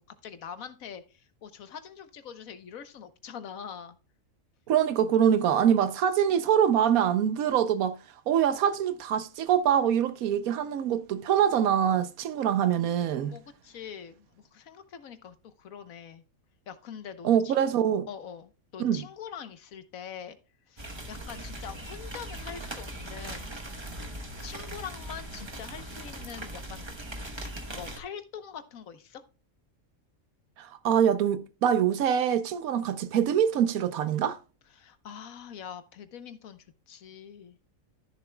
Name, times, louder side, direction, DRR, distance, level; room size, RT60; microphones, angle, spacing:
voice 1, 0.0-4.0 13.3-16.2 16.7-17.7 18.1-20.4 20.7-23.6 24.4-26.9 27.4-29.2 34.7-37.6, left 7 dB, 75° left, 1.3 m, -44 dB
voice 2, 4.7-8.0 8.3-13.3 17.2-18.1 18.8-19.0 30.6-34.4, right 9 dB, 85° right, 1.2 m, -24 dB
sound 1, 20.8-28.0, right 1 dB, 20° right, 1.0 m, -40 dB
13.5 x 6.9 x 2.2 m
omnidirectional pair, 1.5 m